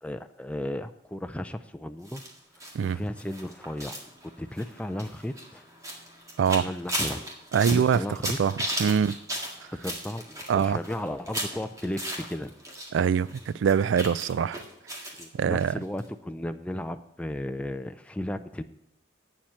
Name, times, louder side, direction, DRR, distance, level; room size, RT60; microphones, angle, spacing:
voice 1, 0.0-2.2 2.8-3.9 4.2-5.6 6.6-7.2 7.7-8.4 8.8-8.9 9.7-12.5 15.2-18.6, left 1 dB, 5° left, 0.4 m, -34 dB
sound 1, 2.0-12.9 13.2-15.2 15.6-15.7 16.0-16.1, equal, 15° right, 1.7 m, -36 dB
voice 2, 6.4-6.7 7.5-8.0 8.4-9.2 10.5-10.8 12.9-14.6 15.3-15.7, right 7 dB, 75° right, 0.3 m, -24 dB
8.8 x 7.3 x 7.7 m
head